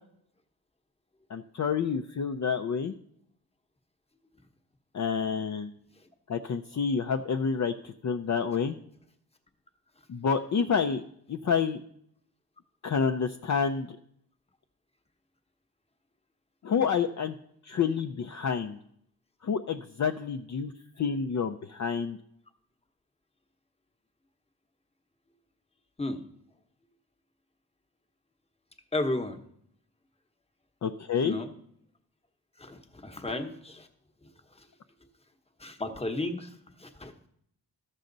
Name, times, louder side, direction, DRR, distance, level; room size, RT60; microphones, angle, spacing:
voice 1, 1.3-2.9 4.9-5.7 6.3-8.7 10.1-11.0 11.3-11.8 12.8-13.9 16.6-17.4 17.6-18.8 19.4-20.7 21.0-22.2 30.8-31.4, left 6 dB, 45° left, 5 dB, 0.5 m, -28 dB
voice 2, 28.9-29.4 31.2-31.5 32.6-33.9 35.6-37.1, left 2 dB, 15° left, 6 dB, 1.0 m, -33 dB
13.0 x 6.5 x 3.9 m, 0.71 s
cardioid pair, 80°, 41 cm